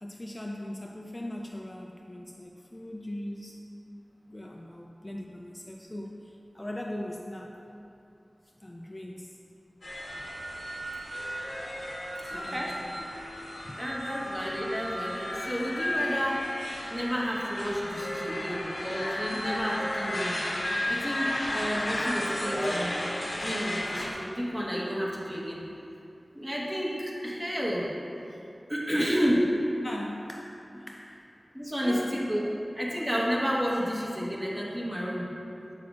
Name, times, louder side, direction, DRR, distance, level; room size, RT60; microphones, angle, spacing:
voice 1, 0.0-3.6 4.3-7.6 8.6-9.3 12.2-12.9 13.3-13.4 13.6-13.8 28.9-29.3 29.8-31.2 31.8-32.2, left 1 dB, 25° left, 0 dB, 0.3 m, -39 dB
sound 1, 9.8-24.1, left 1 dB, 90° left, 0.9 m, -33 dB
voice 2, 12.3-12.8 13.8-16.4 16.9-20.4 20.9-22.9 23.3-25.6 26.3-27.9 28.7-29.4 31.5-32.5 32.7-35.3, equal, 20° right, -5 dB, 1.2 m, -31 dB
7.1 x 6.0 x 2.5 m, 2.7 s
wide cardioid pair, 65°, 0 cm